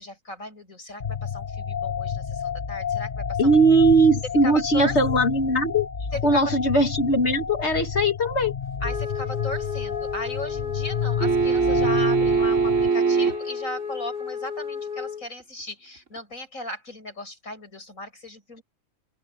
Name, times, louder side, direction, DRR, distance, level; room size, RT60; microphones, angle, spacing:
voice 1, 0.0-3.5 4.4-5.0 6.1-6.5 8.8-18.6, left 2 dB, 80° left, 7.7 m, -36 dB
sound 1, 1.0-12.9, left 7 dB, 35° left, 1.5 m, -30 dB
voice 2, 3.4-5.9 6.2-8.5, right 2 dB, 55° left, 2.3 m, -20 dB
Wind instrument woodwind instrument, 8.8-15.3, left 6 dB, 40° right, 2.4 m, -33 dB
sound 2, 11.2-13.6 16.2-16.3, right 5 dB, 65° right, 4.0 m, -22 dB
open air
omnidirectional pair, 1.4 m